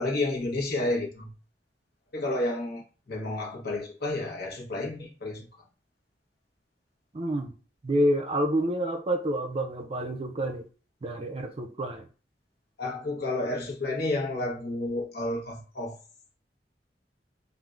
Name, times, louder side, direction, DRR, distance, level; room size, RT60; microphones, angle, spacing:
voice 1, 0.0-1.3 2.1-5.7 12.8-16.0, left 2 dB, 60° left, 1.1 m, -31 dB
voice 2, 7.1-7.5 7.8-10.6 11.0-12.0, right 1 dB, 35° right, 0.5 m, -28 dB
3.4 x 2.4 x 2.5 m
head